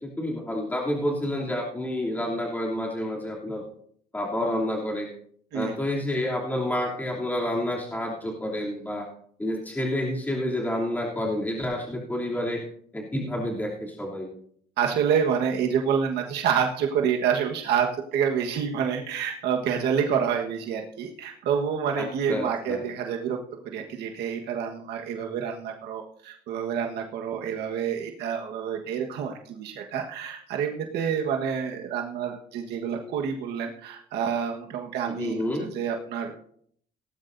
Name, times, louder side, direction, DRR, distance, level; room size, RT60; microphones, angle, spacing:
voice 1, 0.0-3.6 4.1-5.1 5.5-9.1 9.4-12.6 12.9-14.3 21.9-22.8 35.1-35.7, left 1 dB, 10° left, -3 dB, 3.0 m, -29 dB
voice 2, 14.8-23.4 23.6-36.3, right 7 dB, 80° right, 2 dB, 1.5 m, -28 dB
17.5 x 12.0 x 2.7 m, 0.64 s
cardioid pair, 110°, 17 cm